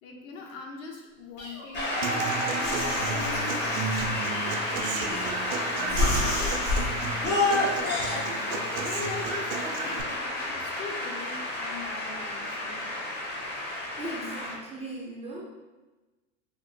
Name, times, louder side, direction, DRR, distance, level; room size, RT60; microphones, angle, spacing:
voice 1, 0.0-1.9 2.3-7.8 8.4-12.9, left 4 dB, 60° left, 0 dB, 0.8 m, -42 dB
sound 1, 1.4-2.2 2.6-4.0 4.8-5.5 5.9-6.9 7.2-8.2, left 2 dB, 80° left, 1.3 m, -29 dB
Shout / Cheering / Applause, 1.7-14.5, left 1 dB, 25° left, 0.6 m, -31 dB
Human voice / Acoustic guitar, 2.0-10.0, right 6 dB, 70° right, 0.5 m, -35 dB
voice 2, 14.0-15.4, right 1 dB, 15° right, -4 dB, 0.3 m, -38 dB
3.4 x 2.4 x 2.6 m, 1.2 s
hypercardioid pair, 95°, 41 cm